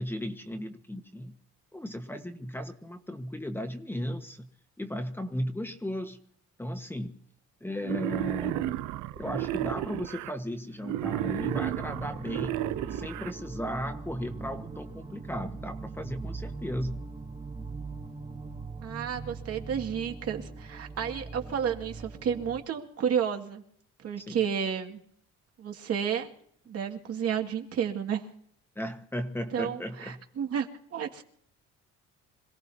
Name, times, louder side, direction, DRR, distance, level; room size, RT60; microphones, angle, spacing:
voice 1, 0.0-1.3 1.7-4.5 4.8-6.2 6.6-7.1 7.6-8.7 9.2-12.6 12.9-17.0 24.2-24.4 28.7-30.2, equal, 5° left, 6 dB, 1.4 m, -35 dB
Wild animals, 7.8-10.3 10.8-13.3, right 14 dB, 80° right, 0.7 m, -32 dB
sound 1, 11.0-22.6, right 3 dB, 20° right, 2.0 m, -41 dB
voice 2, 18.8-23.6 24.0-25.0 25.6-26.3 26.7-28.3 29.5-31.2, right 8 dB, 55° right, 3 dB, 2.3 m, -31 dB
26.5 x 17.5 x 2.8 m, 0.64 s
cardioid pair, 115°, 29 cm